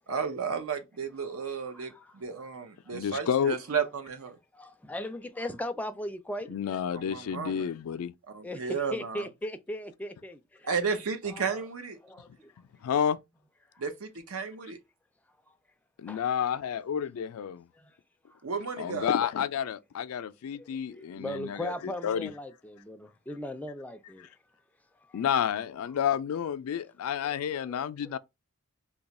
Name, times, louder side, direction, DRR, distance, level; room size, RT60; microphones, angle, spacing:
voice 1, 0.1-4.4 6.9-7.7 8.3-9.3 10.6-12.0 13.8-14.8 18.4-19.1, right 6 dB, 85° right, 0.7 m, -33 dB
voice 2, 1.2-2.2 2.9-3.0 4.5-6.6 8.4-10.7 11.3-11.6 12.0-12.5 16.1-16.2 17.8-18.0 18.3-18.4 20.1-24.3 25.0-25.2 27.2-28.2, left 1 dB, 5° left, 0.3 m, -39 dB
voice 3, 2.9-3.6 6.5-8.1 12.8-13.2 16.0-17.7 18.8-21.7 22.0-22.3 25.1-28.2, left 8 dB, 90° left, 0.3 m, -30 dB
2.9 x 2.3 x 4.0 m
head